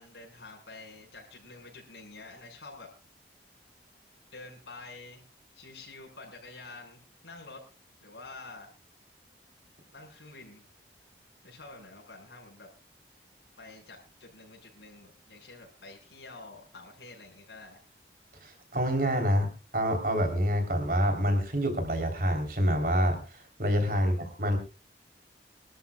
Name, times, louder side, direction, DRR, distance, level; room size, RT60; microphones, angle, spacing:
voice 1, 0.0-2.9 4.3-5.2 5.5-7.6 8.0-8.7 9.9-10.6 11.4-12.7 13.6-17.8 24.1-24.2, left 3 dB, 80° left, -1 dB, 5.9 m, -48 dB
voice 2, 18.4-24.6, equal, 50° right, 6 dB, 3.6 m, -27 dB
25.0 x 13.0 x 2.3 m, 0.32 s
head